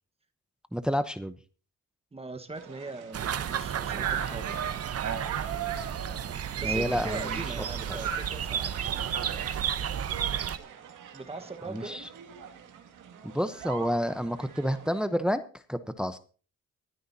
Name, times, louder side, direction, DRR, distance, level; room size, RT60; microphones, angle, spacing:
voice 1, 0.7-1.3 6.6-8.0 11.7-12.1 13.2-15.4 15.7-16.2, equal, 5° right, 0.8 m, -30 dB
voice 2, 2.1-4.7 6.6-8.8 11.1-12.0, right 3 dB, 20° right, 1.4 m, -41 dB
sound 1, 2.5-15.1, right 8 dB, 85° right, 2.2 m, -40 dB
sound 2, 3.1-10.6, right 8 dB, 50° right, 1.0 m, -32 dB
25.0 x 10.0 x 2.8 m
cardioid pair, 90°, 30 cm